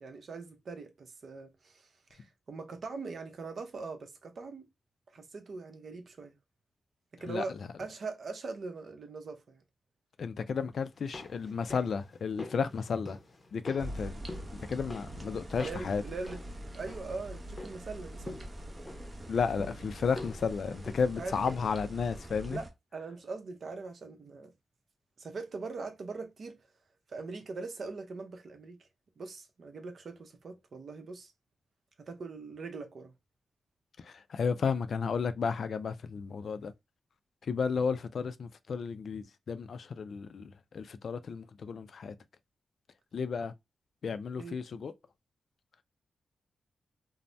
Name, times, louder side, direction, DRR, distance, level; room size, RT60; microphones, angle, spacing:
voice 1, 0.0-4.6 5.1-6.4 7.2-9.6 15.6-16.4 16.7-18.4 21.2-21.5 22.5-22.7 22.9-24.5 25.2-26.6 27.1-28.8 29.2-31.3 32.0-33.1 44.4-44.6, right 3 dB, 60° right, 0.6 m, -41 dB
voice 2, 10.2-13.2 13.5-14.2 14.5-16.0 19.3-22.6 34.0-36.7 37.4-42.1 43.1-43.5 44.0-44.9, left 5 dB, 65° left, 0.3 m, -33 dB
sound 1, 10.9-21.9 22.1-22.2, left 2 dB, 30° left, 0.6 m, -48 dB
sound 2, 13.8-22.7, right 1 dB, 25° right, 0.7 m, -44 dB
2.6 x 2.0 x 3.2 m
cardioid pair, 85°, 0 cm